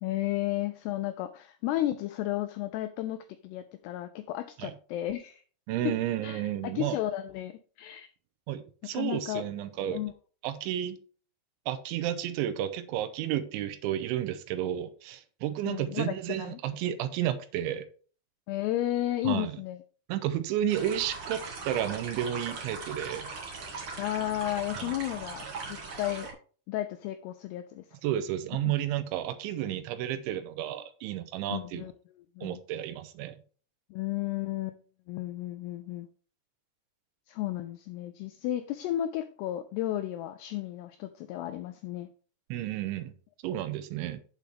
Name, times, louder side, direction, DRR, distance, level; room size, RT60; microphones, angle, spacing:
voice 1, 0.0-3.2 3.4-5.4 5.8-5.9 6.2-8.1 8.9-9.4 9.9-10.1 15.6-16.6 18.5-19.8 24.0-26.3 26.7-27.8 28.6-28.7 31.5-31.9 32.4-32.6 33.9-34.8 35.1-36.1 37.3-42.1, left 14 dB, 90° left, 2.3 m, -33 dB
voice 2, 5.7-7.0 8.5-10.0 10.4-11.0 11.7-17.9 19.2-19.6 20.1-23.3 24.8-24.9 28.0-31.9 32.4-33.4 42.5-43.1 43.4-44.2, right 11 dB, 90° right, 3.2 m, -32 dB
sound 1, 20.7-26.3, right 4 dB, 60° right, 1.4 m, -40 dB
8.5 x 7.8 x 3.5 m
omnidirectional pair, 5.3 m